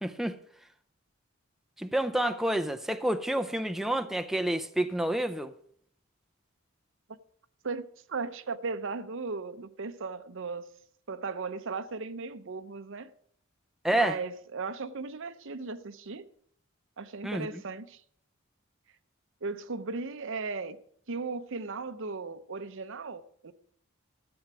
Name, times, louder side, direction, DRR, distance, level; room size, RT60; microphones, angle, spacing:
voice 1, 0.0-0.3 1.8-5.5 13.8-14.2 17.2-17.6, right 1 dB, ahead, 0.5 m, -29 dB
voice 2, 8.1-10.6 11.1-13.1 13.9-16.3 17.0-18.0 19.4-20.8 21.1-23.5, right 4 dB, 65° right, 0.8 m, -36 dB
13.5 x 7.9 x 6.1 m
head